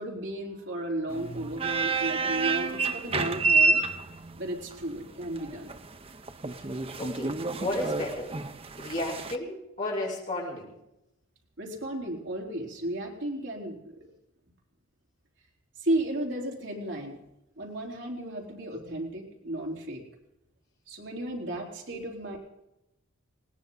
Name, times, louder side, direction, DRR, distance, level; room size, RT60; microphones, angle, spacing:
voice 1, 0.0-3.8 4.3-5.7 11.6-14.0 15.8-17.2 17.6-20.0 20.9-22.4, right 1 dB, 60° right, 0 dB, 3.8 m, -34 dB
sound 1, 1.1-9.4, right 4 dB, 25° right, 0.7 m, -29 dB
voice 2, 7.0-8.3 8.8-10.7 21.9-22.0, left 1 dB, 35° left, -5 dB, 5.6 m, -33 dB
20.0 x 18.0 x 4.0 m, 0.89 s
head